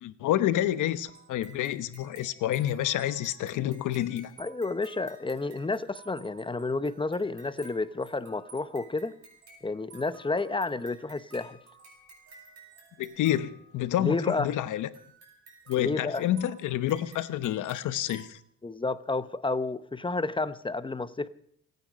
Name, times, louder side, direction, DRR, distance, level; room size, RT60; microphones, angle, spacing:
voice 1, 0.0-4.3 13.0-14.9 15.7-18.4, left 12 dB, 85° left, 1.1 m, -28 dB
sound 1, 1.1-14.2 14.9-18.3, right 3 dB, 55° right, 6.1 m, -54 dB
voice 2, 4.4-9.1 9.6-11.6 14.0-14.6 15.8-16.2 18.6-21.3, left 3 dB, 15° left, 0.8 m, -31 dB
28.0 x 9.4 x 5.2 m
cardioid pair, 90°, 30 cm